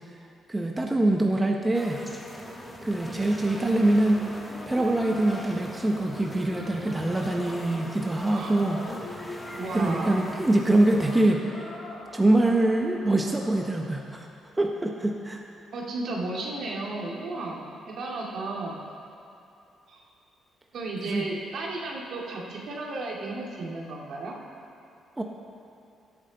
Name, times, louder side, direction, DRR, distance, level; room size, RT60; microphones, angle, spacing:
voice 1, 0.5-2.0 2.8-4.2 4.7-8.8 9.7-11.7 12.1-14.3 14.6-15.4 21.0-21.3 25.2-25.3, right 1 dB, 15° right, 1 dB, 0.8 m, -24 dB
sound 1, 1.7-11.3, equal, 10° left, 1.2 m, -41 dB
sound 2, 4.4-13.7, left 2 dB, 50° left, 2.0 m, -44 dB
voice 2, 8.2-8.5 9.6-10.3 15.7-18.7 19.9-20.0 20.7-24.4, right 2 dB, 65° right, -2 dB, 2.0 m, -34 dB
16.0 x 8.2 x 3.9 m, 2.7 s
cardioid pair, 90°, 0 cm